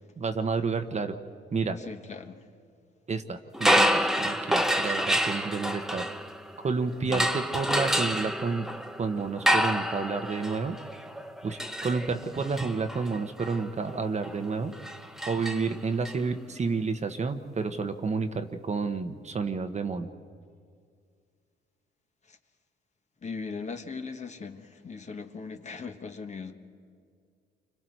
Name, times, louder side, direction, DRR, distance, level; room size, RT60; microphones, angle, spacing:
voice 1, 0.2-1.1 1.5-1.8 3.1-6.1 6.6-8.7 9.0-10.8 11.4-14.7 15.3-20.1, right 4 dB, 35° right, 7 dB, 1.1 m, -30 dB
voice 2, 1.9-2.4 7.1-7.3 22.3-22.4 23.2-26.5, left 4 dB, 35° left, 6 dB, 1.4 m, -39 dB
sound 1, 3.5-6.6 7.1-16.1, equal, ahead, 0.9 m, -28 dB
29.5 x 25.5 x 4.6 m, 2.2 s
cardioid pair, 90°, 20 cm